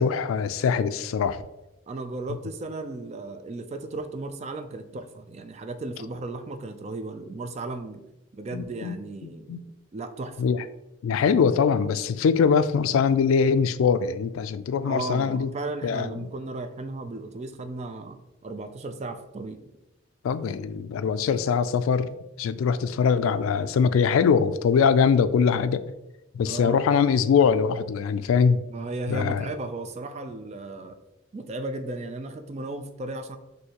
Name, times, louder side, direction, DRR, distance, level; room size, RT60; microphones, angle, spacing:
voice 1, 0.0-1.5 8.5-9.0 9.2-9.6 10.4-10.6 11.0-15.5 15.8-16.1 20.2-25.8 26.3-28.6 29.1-29.5, left 6 dB, 85° left, 14 dB, 0.3 m, -22 dB
voice 2, 1.9-8.0 8.3-9.6 9.9-10.4 14.8-18.2 18.4-19.6 26.5-26.8 28.7-31.0 31.3-33.4, right 2 dB, 30° right, 8 dB, 0.3 m, -35 dB
6.3 x 2.7 x 2.9 m, 0.95 s
head